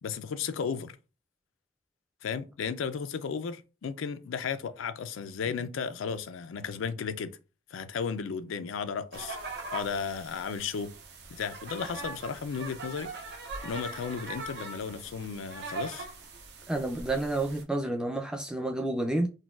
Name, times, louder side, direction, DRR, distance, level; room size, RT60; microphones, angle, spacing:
voice 1, 0.0-1.0 2.2-7.4 7.7-9.4 9.7-10.9 11.3-13.1 13.6-16.1, left 6 dB, 85° left, 0.4 m, -34 dB
sound 1, 9.1-17.6, right 3 dB, 55° right, 0.6 m, -41 dB
voice 2, 16.7-19.3, right 2 dB, 5° right, 0.4 m, -30 dB
3.9 x 2.2 x 2.3 m
head